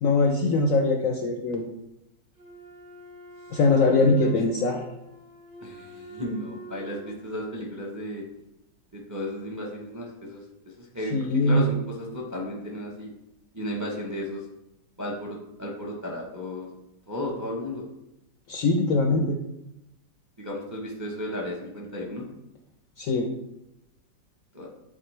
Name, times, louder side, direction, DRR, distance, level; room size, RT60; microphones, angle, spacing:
voice 1, 0.0-1.6 3.5-4.9 11.1-11.7 18.5-19.4 23.0-23.3, left 3 dB, 70° left, 3 dB, 0.8 m, -22 dB
Wind instrument woodwind instrument, 2.3-7.2, right 2 dB, 85° right, 3.3 m, -46 dB
voice 2, 5.6-8.2 8.9-10.4 10.8-11.1 11.4-13.1 13.5-14.4 15.0-16.7 17.1-17.8 20.4-22.3 24.5-24.7, left 1 dB, 20° right, -1 dB, 0.5 m, -34 dB
8.7 x 3.8 x 3.2 m, 0.88 s
omnidirectional pair, 1.9 m